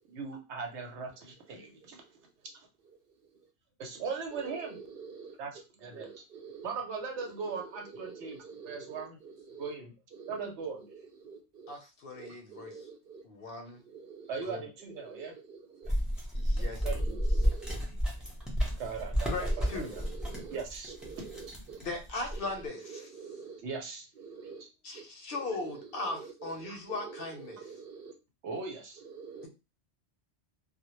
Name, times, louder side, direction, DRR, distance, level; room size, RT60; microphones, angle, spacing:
voice 1, 0.1-2.0 3.8-4.8 5.4-6.1 6.6-8.4 8.6-9.2 9.6-9.9 10.3-10.9 14.3-15.3 16.6-17.2 18.8-20.0 20.5-20.9 23.6-24.1 28.4-29.0, right 5 dB, 85° right, 1.0 m, -39 dB
voice 2, 4.3-5.3 5.9-6.7 7.2-9.7 10.2-10.3 11.2-11.7 12.1-13.2 13.9-14.3 15.0-15.9 16.8-17.8 19.3-20.6 21.0-21.8 22.3-23.6 24.2-24.7 24.9-25.0 25.3-28.1 29.1-29.5, right 5 dB, 60° right, 0.7 m, -47 dB
voice 3, 11.7-12.7 13.2-13.8 14.5-14.6 16.3-16.8 19.3-19.9 21.8-23.1 24.8-27.6, left 3 dB, 65° left, 0.7 m, -38 dB
sound 1, 15.8-22.6, equal, ahead, 0.5 m, -32 dB
2.1 x 2.0 x 2.9 m
omnidirectional pair, 1.1 m